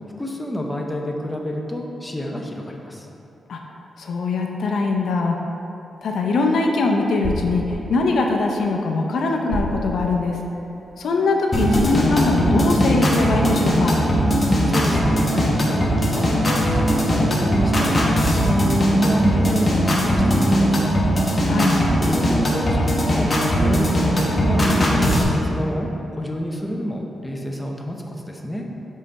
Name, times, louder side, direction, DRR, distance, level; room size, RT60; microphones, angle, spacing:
voice 1, 0.2-3.1 14.4-21.0 22.0-24.7 24.9-25.9 26.2-28.7, equal, 10° left, 0 dB, 0.6 m, -29 dB
voice 2, 4.0-5.4 6.0-10.4 11.0-13.9 21.5-21.7, left 3 dB, 70° left, 2 dB, 0.5 m, -22 dB
sound 1, 6.0-12.9, right 1 dB, 40° right, 1.0 m, -34 dB
sound 2, 11.5-25.2, equal, 25° left, 0.9 m, -19 dB
5.5 x 4.1 x 5.1 m, 2.9 s
wide cardioid pair, 135°, 0 cm